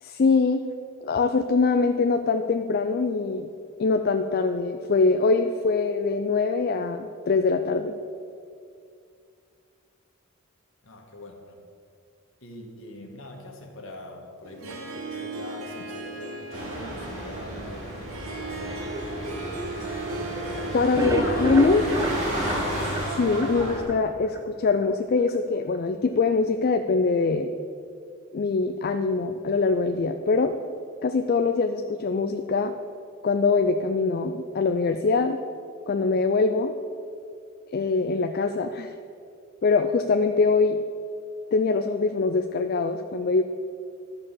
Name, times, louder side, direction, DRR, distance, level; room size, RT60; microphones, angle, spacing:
voice 1, 0.0-0.6 1.0-3.5 3.8-7.9 20.7-21.8 22.8-27.5 28.3-30.5 31.0-32.7 33.2-35.4 35.9-36.7 37.7-38.9 39.6-40.8 41.5-43.4, left 4 dB, 45° left, 6 dB, 0.4 m, -23 dB
voice 2, 10.8-11.6 12.4-18.8, left 1 dB, 65° left, 1 dB, 1.6 m, -43 dB
Harp, 14.4-22.3, right 2 dB, 75° right, 1.3 m, -37 dB
sound 1, 16.5-23.8, right 1 dB, 30° right, 2.5 m, -32 dB
sound 2, 20.9-24.0 24.4-24.5 24.8-24.9 25.3-25.4, equal, 15° right, 0.5 m, -29 dB
12.0 x 4.8 x 7.4 m, 2.4 s
head